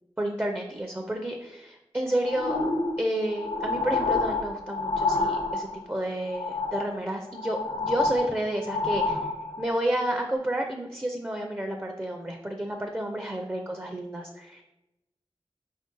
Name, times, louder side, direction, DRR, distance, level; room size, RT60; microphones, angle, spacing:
voice 1, 0.2-2.6 3.0-9.3 9.6-14.6, right 1 dB, 20° right, 3 dB, 0.5 m, -30 dB
sound 1, 2.2-5.9 6.3-7.0 7.3-9.7 10.3-10.4, left 3 dB, 70° left, 0.6 m, -28 dB
4.8 x 2.6 x 3.7 m, 0.93 s
wide cardioid pair, 50°, 10 cm